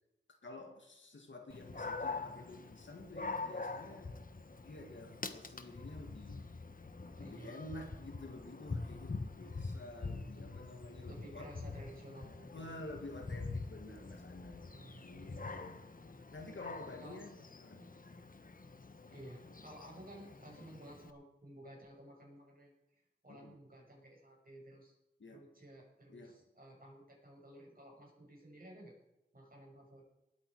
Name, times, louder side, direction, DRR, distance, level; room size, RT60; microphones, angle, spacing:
voice 1, 0.4-4.1 4.6-6.5 7.2-11.5 12.5-14.7 15.0-15.8 16.3-17.8 20.6-20.8 23.3-23.6 25.2-25.4 26.1-26.4, left 1 dB, 90° left, 3 dB, 2.1 m, -50 dB
Dog, 1.5-21.1, left 3 dB, 50° left, 1.0 m, -45 dB
voice 2, 7.2-7.6 11.1-12.8 14.7-15.6 17.0-17.2 19.1-22.7 23.2-24.9 25.3-29.0 29.3-30.0, right 1 dB, 50° right, -2 dB, 6.3 m, -54 dB
19.5 x 8.6 x 4.8 m, 0.91 s
wide cardioid pair, 55°, 19 cm